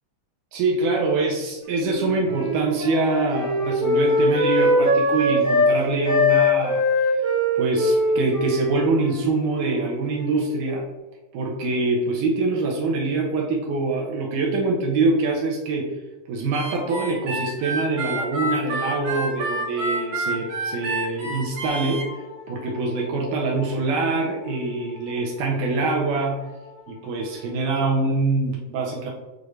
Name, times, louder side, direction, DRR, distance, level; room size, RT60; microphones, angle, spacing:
voice 1, 0.5-7.1 7.6-10.8 11.3-15.9 16.3-22.1 22.5-26.5 26.9-29.1, right 3 dB, 80° right, -2 dB, 2.2 m, -24 dB
Wind instrument woodwind instrument, 1.7-5.7 6.0-10.5, left 1 dB, 40° right, 1.4 m, -22 dB
Harmonica, 16.5-22.1, right 2 dB, 60° right, 1.8 m, -28 dB
Wind instrument woodwind instrument 2, 17.9-27.9, left 5 dB, 90° left, 2.1 m, -43 dB
6.4 x 2.4 x 3.2 m, 1.1 s
omnidirectional pair, 3.7 m